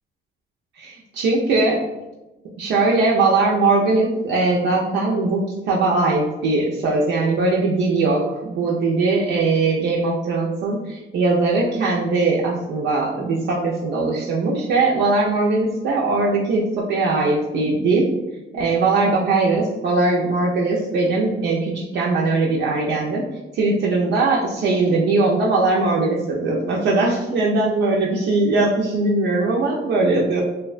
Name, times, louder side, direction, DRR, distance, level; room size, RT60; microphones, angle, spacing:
voice 1, 0.8-1.8 2.6-18.1 18.5-23.2 23.5-30.4, right 3 dB, 65° right, -3 dB, 0.4 m, -20 dB
2.5 x 2.1 x 2.4 m, 1.0 s
cardioid pair, 90°, 20 cm